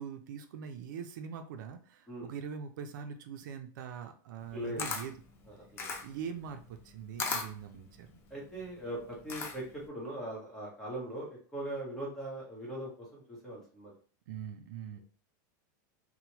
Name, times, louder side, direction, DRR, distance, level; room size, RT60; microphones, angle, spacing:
voice 1, 0.0-5.1 6.0-8.2 14.3-15.0, right 7 dB, 75° right, 6 dB, 0.4 m, -42 dB
Camera, 4.4-9.9, left 4 dB, 20° left, 0.3 m, -39 dB
voice 2, 4.5-4.9 5.7-5.9 8.3-13.9, right 1 dB, 5° left, -6 dB, 0.9 m, -40 dB
2.9 x 2.0 x 2.9 m, 0.43 s
supercardioid pair, 175°, 10 cm